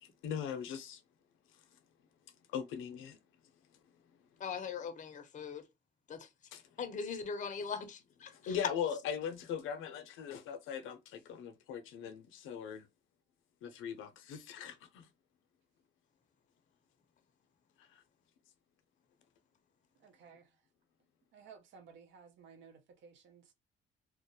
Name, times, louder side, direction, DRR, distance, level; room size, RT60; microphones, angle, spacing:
voice 1, 0.0-1.0 2.5-3.2 6.5-6.6 8.3-12.9 13.6-15.1 17.8-18.0, left 8 dB, 85° left, 0.5 m, -40 dB
voice 2, 4.4-5.6 6.1-6.3 6.8-8.6, left 5 dB, 40° left, 0.5 m, -41 dB
voice 3, 20.0-20.6 21.3-23.5, right 6 dB, 70° right, 0.6 m, -57 dB
2.3 x 2.0 x 2.7 m
cardioid pair, 90°, 20 cm